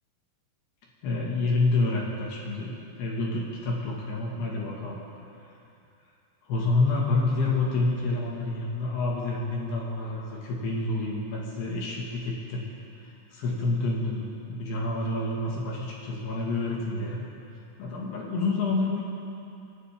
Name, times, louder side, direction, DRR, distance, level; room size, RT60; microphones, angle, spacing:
voice 1, 1.0-5.0 6.5-12.7 13.3-17.2 17.8-19.0, left 3 dB, 60° left, -3 dB, 3.5 m, -28 dB
28.5 x 12.0 x 3.6 m, 2.7 s
omnidirectional pair, 5.8 m